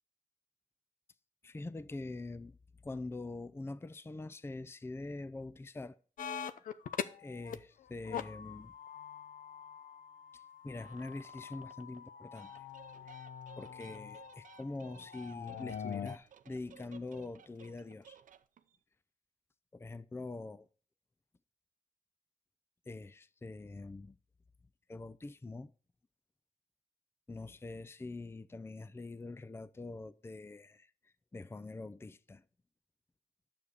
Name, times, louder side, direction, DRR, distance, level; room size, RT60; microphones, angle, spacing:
voice 1, 1.4-2.6 2.8-6.0 7.2-8.7 10.3-12.7 13.1-13.3 13.6-18.2 19.7-20.7 22.9-24.2 24.9-25.7 27.3-32.4, left 2 dB, 20° left, 0.5 m, -44 dB
sound 1, 6.2-7.5 7.8-16.2, left 8 dB, 85° left, 0.6 m, -44 dB
sound 2, 10.7-12.0 12.3-18.8, right 8 dB, 75° right, 0.6 m, -58 dB
9.3 x 7.0 x 4.8 m
cardioid pair, 65°, 14 cm